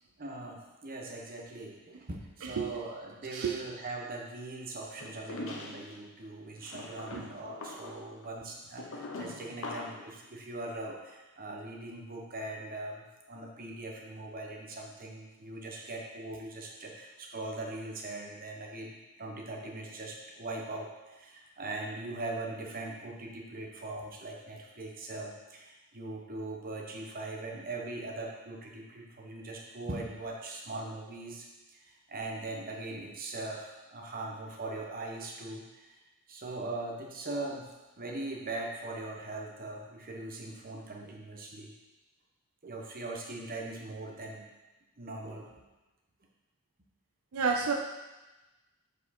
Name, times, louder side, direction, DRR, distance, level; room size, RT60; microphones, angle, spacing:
voice 1, 0.2-31.5 31.8-36.0 36.3-37.7 38.0-41.7 42.6-44.5 45.0-45.5, right 2 dB, 40° right, 0 dB, 1.1 m, -41 dB
voice 2, 2.4-2.7 3.3-3.6 7.1-7.2 47.3-47.7, right 5 dB, 75° right, 3 dB, 0.5 m, -30 dB
sound 1, 5.0-6.0 6.6-10.1, left 2 dB, 60° left, 0.9 m, -42 dB
6.9 x 5.0 x 4.2 m, 1.1 s
head